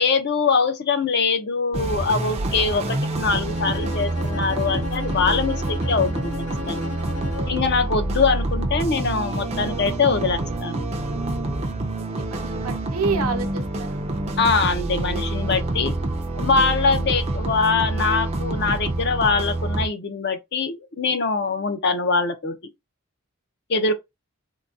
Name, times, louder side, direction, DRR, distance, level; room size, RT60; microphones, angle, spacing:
voice 1, 0.0-6.3 6.7-6.9 7.5-10.9 14.4-15.9 16.3-22.6 23.7-23.9, left 4 dB, 50° left, 0.6 m, -23 dB
sound 1, 1.7-19.9, right 2 dB, 30° right, 0.4 m, -27 dB
Bowed string instrument, 3.5-7.7, left 4 dB, 90° left, 1.0 m, -35 dB
voice 2, 11.4-14.1, right 5 dB, 80° right, 0.7 m, -30 dB
3.8 x 2.2 x 2.4 m
head